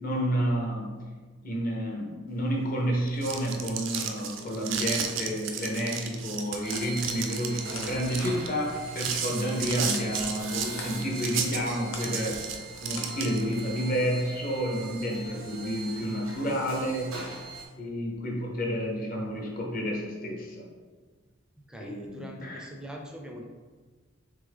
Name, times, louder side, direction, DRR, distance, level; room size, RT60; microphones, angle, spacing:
voice 1, 0.0-1.0 1.4-12.4 12.8-17.2 17.8-20.7 21.8-22.6, equal, 45° left, -1 dB, 0.8 m, -30 dB
sound 1, 3.0-13.6, right 7 dB, 65° right, 0.4 m, -34 dB
sound 2, 6.1-13.7, left 3 dB, 90° left, 0.7 m, -47 dB
sound 3, 6.6-17.6, right 3 dB, 90° right, 0.8 m, -42 dB
voice 2, 21.7-23.4, equal, 5° right, 0 dB, 0.4 m, -42 dB
3.5 x 3.4 x 3.4 m, 1.4 s
head